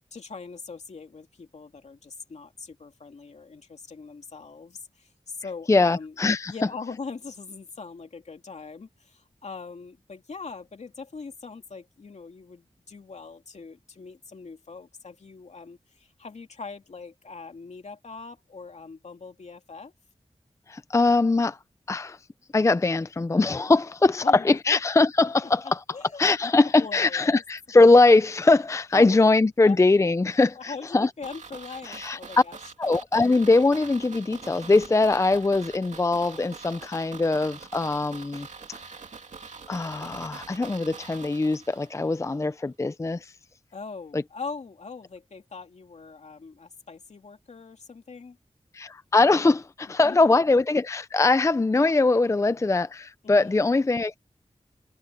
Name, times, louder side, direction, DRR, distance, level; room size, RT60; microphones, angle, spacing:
voice 1, 0.0-6.1 6.5-19.9 24.2-24.8 25.2-25.3 25.6-26.5 26.8-27.4 28.9-29.2 29.6-29.8 30.5-32.6 43.7-48.4 50.0-50.4 53.2-53.6, left 4 dB, 70° left, 2.7 m, -41 dB
voice 2, 5.7-6.5 20.7-21.6 21.9-22.2 22.5-25.8 26.2-31.1 31.8-32.2 32.8-38.5 39.7-43.3 44.1-44.2 48.7-54.2, left 3 dB, 25° left, 0.5 m, -21 dB
sound 1, 31.2-42.2 42.4-42.5, right 5 dB, 90° right, 2.5 m, -44 dB
wide cardioid pair, 105°, 12 cm